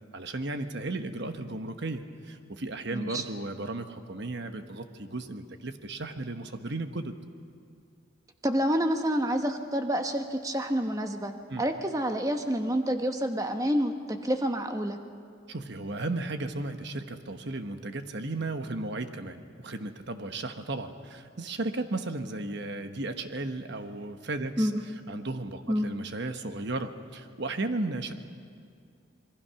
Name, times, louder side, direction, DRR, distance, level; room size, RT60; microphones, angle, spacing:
voice 1, 0.1-7.1 11.5-11.6 15.5-24.7 25.1-28.1, right 2 dB, 55° right, 8 dB, 1.2 m, -35 dB
voice 2, 2.9-3.2 8.4-15.0 24.6-24.8 25.7-25.9, equal, 15° right, 5 dB, 1.1 m, -28 dB
26.5 x 21.5 x 5.8 m, 2.3 s
head